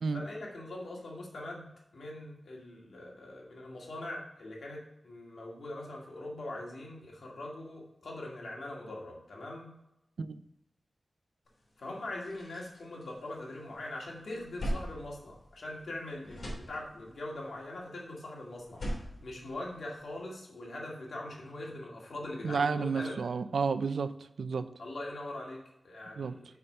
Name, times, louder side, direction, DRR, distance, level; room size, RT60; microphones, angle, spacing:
voice 1, 0.1-1.7 1.9-9.7 11.8-23.1 24.8-26.6, left 1 dB, 80° left, -2 dB, 2.1 m, -42 dB
sound 1, 11.6-11.7 12.0-13.7 14.1-15.9 16.2-17.3 18.5-20.2, equal, 60° left, 2.8 m, -40 dB
voice 2, 22.4-24.1 24.4-24.7 26.2-26.3, right 5 dB, 90° right, 12 dB, 0.4 m, -31 dB
5.8 x 5.4 x 5.4 m, 0.87 s
wide cardioid pair, 85°, 0 cm